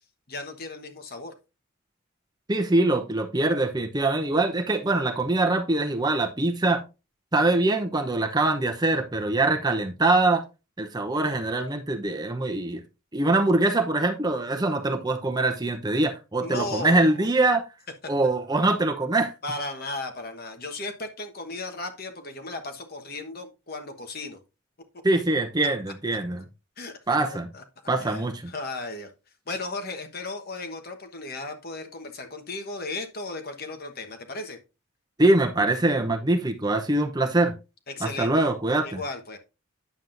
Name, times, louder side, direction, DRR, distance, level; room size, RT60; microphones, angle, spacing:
voice 1, 0.3-1.3 16.4-17.3 19.4-24.4 26.8-26.9 27.5-27.6 28.0-29.1 29.5-34.6 37.9-38.4 38.8-39.4, left 2 dB, 45° left, 1.2 m, -35 dB
voice 2, 2.5-6.8 7.3-10.4 10.8-12.8 13.1-17.6 18.1-19.3 25.0-26.4 27.1-27.5 27.9-28.5 35.2-37.5 38.0-39.0, right 2 dB, 20° right, 0.7 m, -23 dB
9.3 x 7.3 x 2.6 m
head